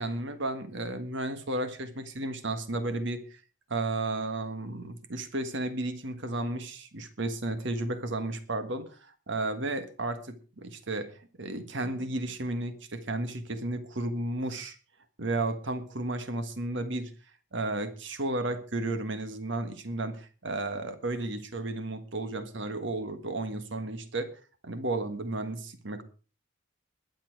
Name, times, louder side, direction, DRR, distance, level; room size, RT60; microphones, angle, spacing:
voice 1, 0.0-3.4 3.7-14.8 15.2-17.1 17.5-24.3 24.6-26.0, right 2 dB, 60° right, 9 dB, 1.6 m, -33 dB
21.5 x 7.4 x 4.7 m, 0.37 s
head